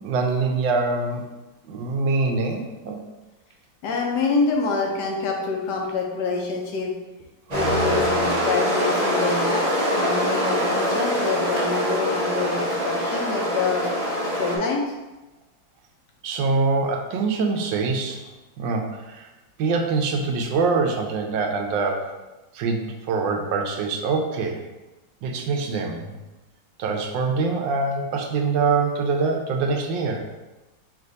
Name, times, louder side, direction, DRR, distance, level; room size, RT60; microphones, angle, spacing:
voice 1, 0.0-1.2 1.7-3.0 16.2-18.2 18.6-19.3 19.6-22.1 22.5-24.6 25.2-26.2 26.8-30.2, right 4 dB, 75° right, 3 dB, 1.3 m, -24 dB
voice 2, 3.8-6.9 7.5-9.6 9.9-13.9 14.3-14.8, left 4 dB, 70° left, 0 dB, 1.1 m, -26 dB
sound 1, 7.5-14.6, equal, 45° right, 0.5 m, -23 dB
3.5 x 3.2 x 3.8 m, 1.1 s
omnidirectional pair, 2.1 m